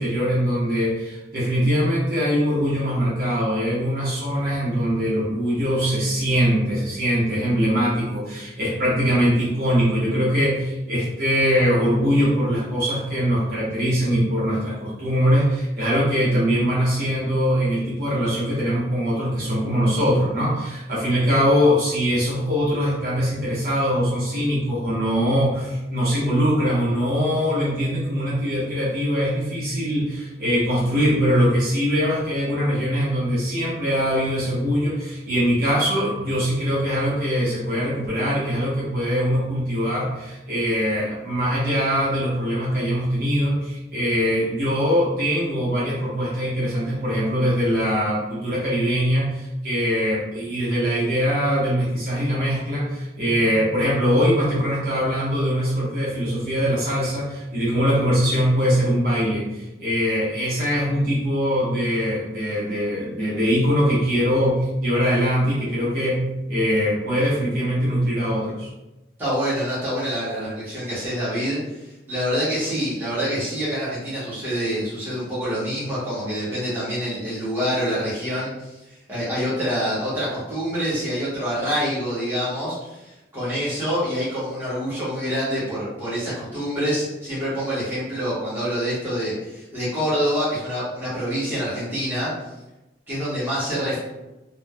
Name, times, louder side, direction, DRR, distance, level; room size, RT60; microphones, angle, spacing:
voice 1, 0.0-68.7, equal, 50° right, -8 dB, 0.9 m, -22 dB
voice 2, 69.2-92.3 93.1-94.0, equal, 10° right, -11 dB, 1.0 m, -26 dB
3.2 x 2.1 x 2.2 m, 0.99 s
head